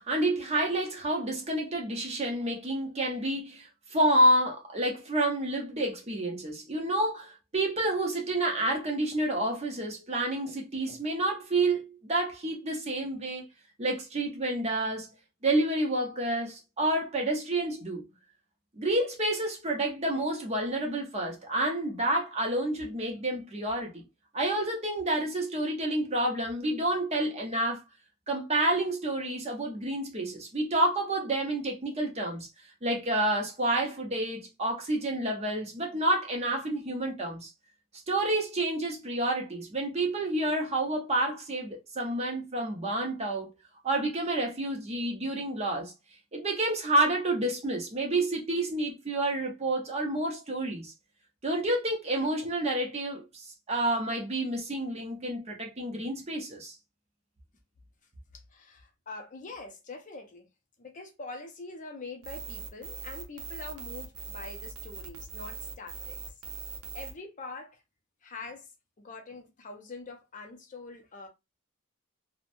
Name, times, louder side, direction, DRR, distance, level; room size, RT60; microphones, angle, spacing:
voice 1, 0.0-13.4 13.8-15.1 15.4-18.1 18.8-24.0 24.3-27.8 28.3-32.5 32.8-37.5 38.1-43.5 43.8-45.9 46.3-50.9 51.4-56.8, right 1 dB, 30° right, 0.6 m, -29 dB
voice 2, 58.3-60.5 60.8-66.2 66.9-67.8 68.2-68.7 69.0-71.3, left 3 dB, 35° left, 0.5 m, -44 dB
sound 1, 62.2-67.1, right 4 dB, 80° right, 0.6 m, -41 dB
2.9 x 2.1 x 2.5 m
head